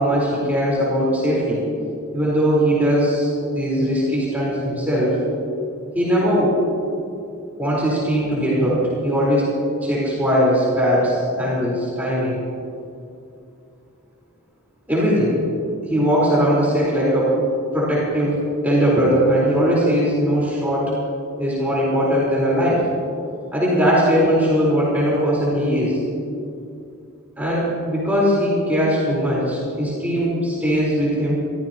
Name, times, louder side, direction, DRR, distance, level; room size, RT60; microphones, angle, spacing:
voice 1, 0.0-1.6 2.1-5.2 5.9-6.6 7.6-9.5 9.8-12.4 14.9-15.3 15.9-17.3 17.7-18.4 18.6-20.9 21.4-22.8 23.5-26.0 27.4-31.4, equal, 10° right, -7 dB, 4.4 m, -19 dB
24.0 x 14.5 x 3.0 m, 2.5 s
head